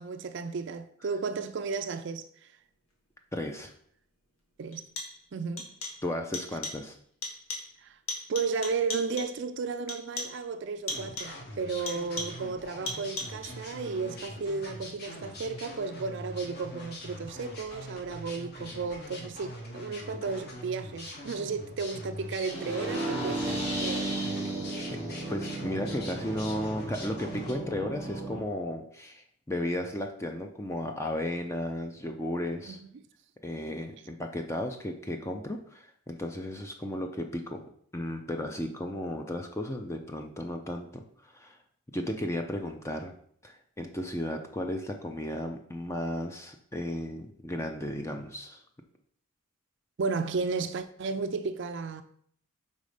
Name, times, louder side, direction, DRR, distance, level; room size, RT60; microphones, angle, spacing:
voice 1, 0.0-2.5 4.6-4.9 5.3-5.7 7.8-8.0 8.3-24.5 32.7-32.8 50.0-52.0, right 4 dB, 55° right, 0.4 m, -34 dB
voice 2, 3.3-3.7 6.0-7.0 24.9-25.0 25.3-32.8 33.4-37.6 37.9-41.6 41.9-43.1 43.4-48.6, left 1 dB, 10° left, 0.4 m, -34 dB
sound 1, 3.7-3.8 4.7-5.3 5.6-6.1 6.3-6.9 7.2-7.8 8.1-9.4 9.9-10.5 10.9-11.4 11.9-12.5 12.9-13.5, left 2 dB, 70° left, 1.5 m, -38 dB
sound 2, 10.9-27.5, left 1 dB, 45° left, 1.2 m, -43 dB
sound 3, 22.4-28.4, right 2 dB, 30° left, 2.5 m, -34 dB
5.3 x 4.1 x 4.9 m
head